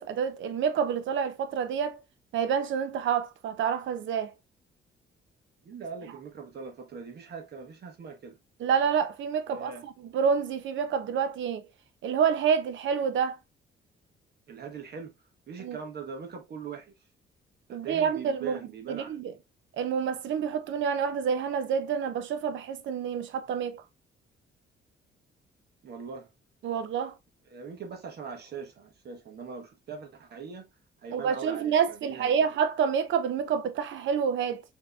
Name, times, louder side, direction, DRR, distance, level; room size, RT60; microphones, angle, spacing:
voice 1, 0.0-2.0 2.3-4.3 8.6-11.7 12.0-13.4 15.6-15.8 17.7-18.6 18.9-19.3 19.8-23.8 26.6-27.1 31.1-34.6, right 7 dB, 70° right, 0.7 m, -28 dB
voice 2, 5.6-8.4 9.5-9.8 14.5-15.1 15.5-16.9 17.7-19.3 25.8-26.3 27.5-30.7 31.0-32.3, right 5 dB, 55° right, 1.1 m, -41 dB
4.4 x 2.9 x 2.3 m
cardioid pair, 90°, 20 cm